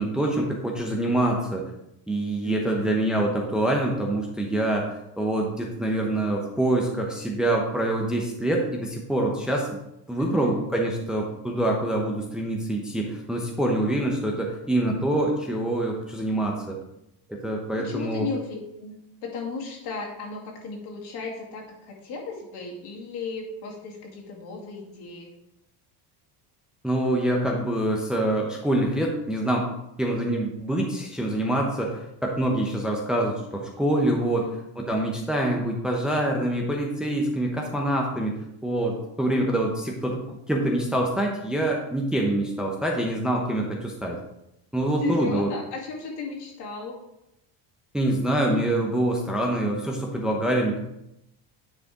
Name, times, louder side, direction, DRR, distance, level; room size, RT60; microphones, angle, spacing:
voice 1, 0.0-1.6 2.1-9.7 10.1-16.8 17.3-18.3 26.8-29.7 30.0-34.5 34.8-38.3 38.6-40.2 40.5-44.2 44.7-45.5 47.9-50.8, right 1 dB, ahead, -1 dB, 0.8 m, -25 dB
voice 2, 2.4-3.1 10.2-10.6 17.8-19.0 19.2-25.3 34.3-34.6 45.0-47.0, left 4 dB, 60° left, -1 dB, 2.5 m, -35 dB
9.8 x 4.9 x 3.7 m, 0.85 s
cardioid pair, 135°, 45 cm